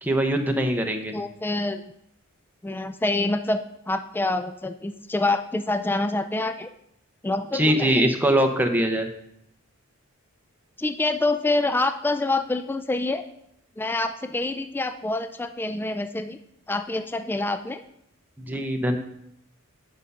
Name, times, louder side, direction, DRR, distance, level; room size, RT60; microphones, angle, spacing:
voice 1, 0.0-1.2 7.5-9.1 18.4-19.0, right 1 dB, 10° right, 4 dB, 0.9 m, -22 dB
voice 2, 1.1-1.8 2.6-6.7 7.2-8.0 10.8-13.3 13.8-16.4 16.7-17.8, left 2 dB, 10° left, 9 dB, 0.3 m, -26 dB
8.9 x 5.4 x 5.6 m, 0.77 s
head